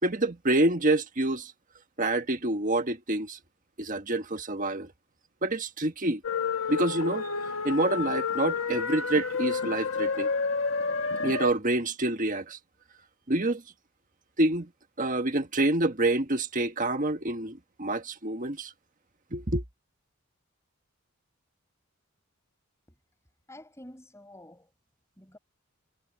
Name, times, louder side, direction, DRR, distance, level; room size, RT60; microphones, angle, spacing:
voice 1, 0.0-1.5 2.0-3.4 3.8-4.9 5.4-6.2 6.7-7.3 7.6-10.3 11.2-12.6 13.3-13.6 14.4-14.7 15.0-18.7 19.3-19.6, right 2 dB, 40° right, 1.6 m, -27 dB
sound 1, 6.2-11.5, left 5 dB, 65° left, 1.6 m, -30 dB
voice 2, 23.5-24.7 25.2-25.4, left 1 dB, 15° left, 5.8 m, -49 dB
head